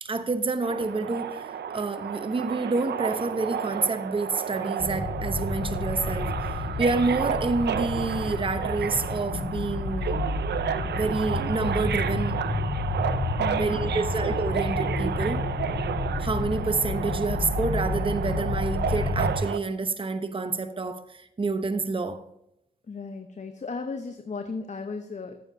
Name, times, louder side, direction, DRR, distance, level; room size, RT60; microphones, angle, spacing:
voice 1, 0.0-10.2 10.9-12.4 13.6-15.4 16.2-22.2, right 3 dB, 30° right, 0.8 m, -28 dB
Subway metro underground, 0.6-19.6, right 8 dB, 75° right, 0.5 m, -32 dB
sound 1, 4.8-19.4, left 3 dB, 65° left, 1.8 m, -30 dB
voice 2, 13.4-14.1 22.9-25.4, left 4 dB, 40° left, 0.9 m, -35 dB
14.5 x 7.3 x 2.7 m
cardioid pair, 50°, 18 cm